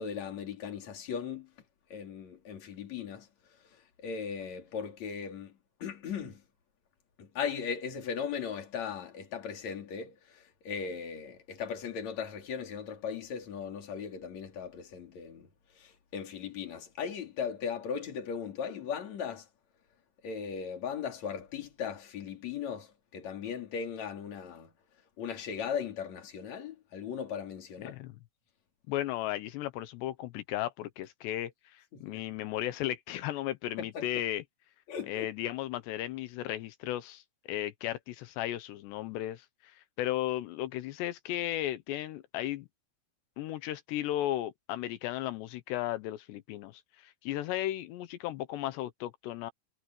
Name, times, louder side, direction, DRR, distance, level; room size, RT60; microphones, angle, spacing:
voice 1, 0.0-1.5 1.9-3.3 4.0-6.4 7.2-15.5 15.7-19.5 20.2-24.7 25.2-28.0 31.9-32.2 33.8-34.1 34.9-35.3, left 7 dB, 40° left, 4.0 m, -38 dB
voice 2, 27.8-28.2 28.9-34.4 35.1-37.2 37.5-42.7 43.4-49.5, left 13 dB, 75° left, 2.6 m, -35 dB
omnidirectional pair, 5.8 m